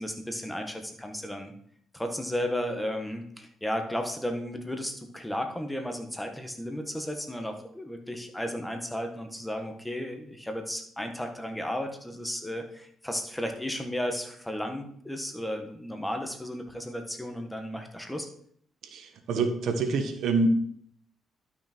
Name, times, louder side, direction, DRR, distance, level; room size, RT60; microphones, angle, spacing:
voice 1, 0.0-1.5 1.9-18.3, equal, 5° left, 4 dB, 1.6 m, -34 dB
voice 2, 18.9-20.5, right 3 dB, 70° right, 7 dB, 1.3 m, -27 dB
11.5 x 6.2 x 4.5 m, 0.63 s
cardioid pair, 90°, 0 cm